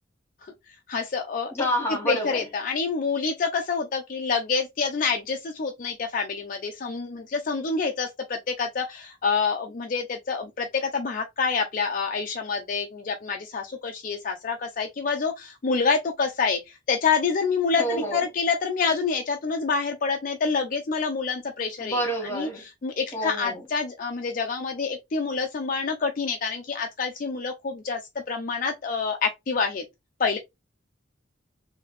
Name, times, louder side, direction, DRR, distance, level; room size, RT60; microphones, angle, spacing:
voice 1, 0.9-1.7 2.0-22.0 22.3-28.0 28.3-29.8 30.2-30.4, left 5 dB, 45° left, 0.4 m, -27 dB
voice 2, 1.5-2.5 17.8-18.2 21.8-22.6 23.1-23.6, right 1 dB, 15° left, 1.4 m, -28 dB
3.3 x 2.7 x 3.0 m
head